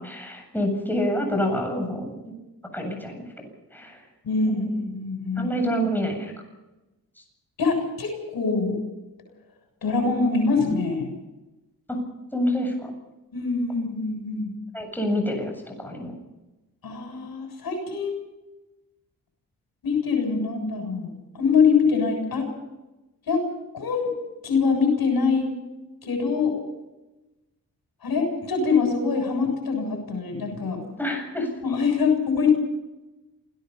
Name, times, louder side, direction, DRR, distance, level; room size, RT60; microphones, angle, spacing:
voice 1, 0.0-2.1 2.7-3.2 3.7-4.0 4.5-4.7 5.4-6.3 11.9-12.0 12.3-12.9 14.7-16.2 31.0-31.5, equal, 5° left, 3 dB, 7.8 m, -27 dB
voice 2, 4.3-5.5 7.6-8.8 9.8-11.1 13.3-14.5 16.8-18.1 19.8-22.5 23.3-23.4 23.7-24.1 24.4-25.5 26.0-26.5 28.0-30.8 31.6-32.5, left 5 dB, 70° left, 5 dB, 7.3 m, -24 dB
28.0 x 18.0 x 5.6 m, 1.0 s
cardioid pair, 85°, 37 cm